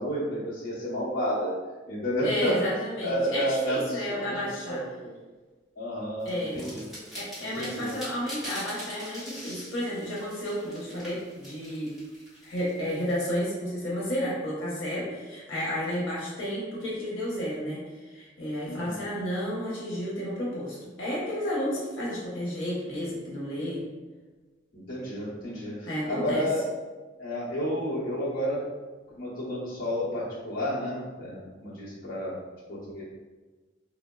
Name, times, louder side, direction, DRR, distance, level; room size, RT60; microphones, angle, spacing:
voice 1, 0.0-1.5 1.9-2.5 3.0-5.1 5.8-6.9 7.4-7.9 18.7-19.1 24.7-26.6 27.2-28.6 29.1-32.3 32.7-33.0, equal, 50° left, -8 dB, 0.8 m, -31 dB
voice 2, 2.2-4.8 6.2-6.6 7.1-11.9 12.4-23.8 25.8-26.5, equal, 80° left, -6 dB, 0.9 m, -32 dB
sound 1, 6.3-13.1, equal, ahead, 1.1 m, -43 dB
3.5 x 2.0 x 2.2 m, 1.3 s
head